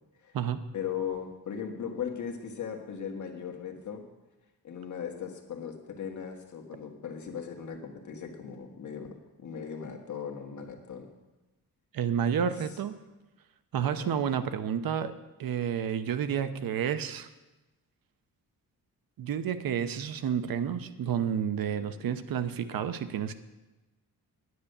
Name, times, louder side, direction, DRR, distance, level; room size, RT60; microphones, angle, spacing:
voice 1, 0.7-4.0 4.6-11.1 13.8-14.2 22.0-22.1, left 7 dB, 55° left, 3 dB, 1.7 m, -38 dB
voice 2, 11.9-12.9 13.7-15.1 15.4-17.3 19.2-23.4, right 8 dB, 70° right, 11 dB, 0.8 m, -30 dB
9.9 x 9.6 x 6.7 m, 1.1 s
wide cardioid pair, 140°, 36 cm